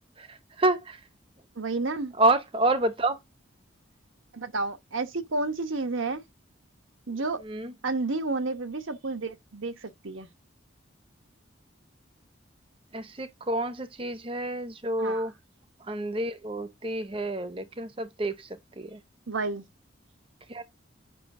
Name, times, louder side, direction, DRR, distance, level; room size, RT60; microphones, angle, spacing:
voice 1, 0.6-1.0 2.2-3.2 7.5-7.7 12.9-15.3 15.9-18.3 18.8-19.0 20.5-20.7, right 2 dB, 25° right, 0.8 m, -28 dB
voice 2, 1.6-2.1 4.3-6.2 7.1-7.4 7.8-10.3 15.0-15.3 19.3-19.6, right 3 dB, 80° right, 1.0 m, -31 dB
9.0 x 5.7 x 2.6 m
head